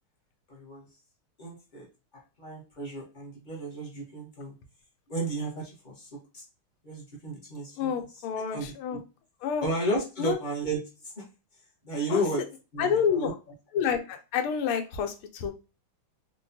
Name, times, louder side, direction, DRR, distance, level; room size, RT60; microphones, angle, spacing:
voice 1, 0.5-0.9 1.4-1.9 2.4-4.5 5.1-6.4 6.8-7.9 8.5-9.0 9.6-10.8 11.2-11.3 11.8-12.4 12.7-13.3, right 1 dB, 40° left, -3 dB, 0.6 m, -33 dB
voice 2, 7.8-9.0 9.4-9.6 10.2-10.4 12.1-12.2 12.8-13.3 13.7-15.5, left 7 dB, 85° left, 6 dB, 1.5 m, -28 dB
4.5 x 2.2 x 2.6 m, 0.31 s
omnidirectional pair, 2.3 m